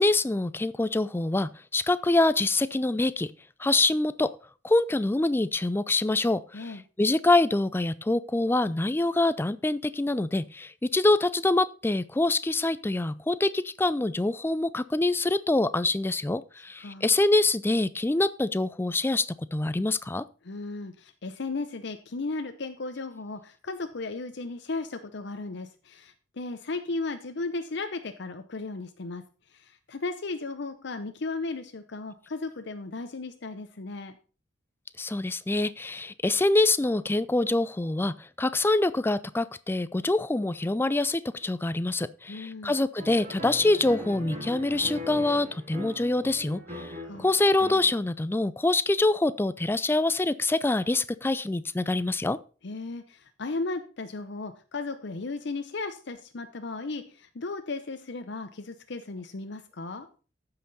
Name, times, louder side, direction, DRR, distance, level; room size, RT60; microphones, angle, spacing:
voice 1, 0.0-3.3 3.6-4.3 4.6-20.2 35.0-52.4, left 2 dB, 10° left, 15 dB, 0.3 m, -25 dB
voice 2, 20.4-29.2 29.5-34.2 42.3-42.7 47.0-47.3 52.6-60.1, left 3 dB, 60° left, 8 dB, 0.7 m, -35 dB
sound 1, 43.0-48.0, left 1 dB, 35° right, 2.5 m, -40 dB
14.0 x 5.8 x 4.1 m, 0.36 s
head